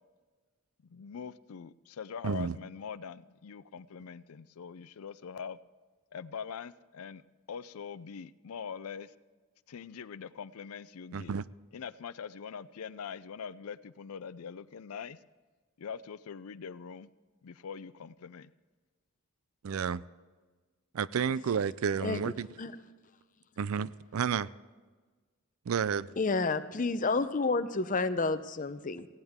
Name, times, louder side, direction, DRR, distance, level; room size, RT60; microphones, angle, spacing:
voice 1, 0.9-5.6 6.1-7.2 7.5-9.1 9.7-11.4 11.7-15.2 15.8-17.1 17.4-18.5, left 6 dB, 85° left, 16 dB, 0.5 m, -43 dB
voice 2, 2.2-2.6 11.1-11.5 19.6-20.0 20.9-22.5 23.6-24.5 25.7-26.1, right 6 dB, 75° right, 19 dB, 0.4 m, -31 dB
voice 3, 22.0-22.3 22.6-22.7 26.2-29.1, left 3 dB, 40° left, 12 dB, 0.6 m, -30 dB
18.5 x 16.0 x 3.6 m, 1.4 s
head